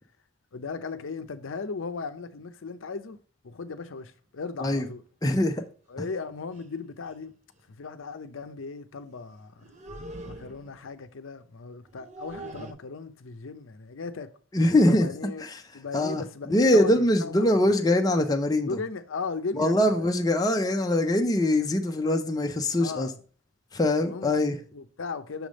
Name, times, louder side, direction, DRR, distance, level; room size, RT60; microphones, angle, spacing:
voice 1, 0.5-3.2 3.4-5.0 5.9-7.3 7.8-9.6 10.2-14.3 14.9-15.5 15.7-17.5 18.6-20.1 22.8-23.1 24.0-24.4 24.7-25.5, left 4 dB, 75° left, 0.6 m, -37 dB
sound 1, 4.7-4.9 6.1-6.2 6.6-6.7 7.0-7.2 9.6-10.9 11.8-12.7, right 2 dB, 35° right, 0.6 m, -42 dB
voice 2, 5.2-5.6 14.5-15.1 15.9-16.2 16.5-18.8 19.6-23.1 23.7-24.6, left 1 dB, 20° left, 0.6 m, -23 dB
6.3 x 3.3 x 5.1 m
head